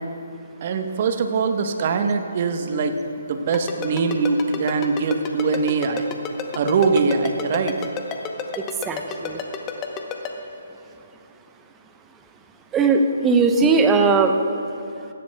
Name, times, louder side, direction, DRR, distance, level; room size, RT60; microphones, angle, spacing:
voice 1, 0.6-6.1 6.5-7.8, right 4 dB, 40° right, 6 dB, 0.9 m, -22 dB
Ringtone, 3.5-10.3, left 8 dB, 20° left, 0.8 m, -30 dB
voice 2, 8.9-9.4 12.7-14.4, right 4 dB, 15° right, 5 dB, 0.7 m, -18 dB
16.5 x 13.5 x 2.3 m, 2.6 s
figure-of-eight pair, 140°, 0 cm